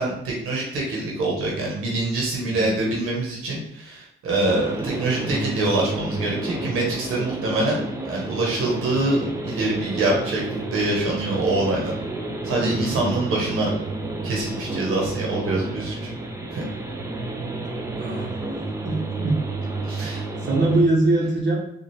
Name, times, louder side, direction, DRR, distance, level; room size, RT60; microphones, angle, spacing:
voice 1, 0.0-7.8 8.0-10.4 10.7-11.9 12.4-13.7 14.2-16.1 16.5-16.6 19.8-20.2, right 2 dB, 85° right, -2 dB, 1.1 m, -25 dB
sound 1, 4.5-20.8, right 2 dB, 15° right, 0.6 m, -31 dB
voice 2, 12.6-13.3 18.0-18.4 18.8-19.4 20.4-21.6, right 2 dB, 60° right, -2 dB, 1.1 m, -23 dB
4.1 x 2.5 x 3.2 m, 0.78 s
cardioid pair, 80°, 21 cm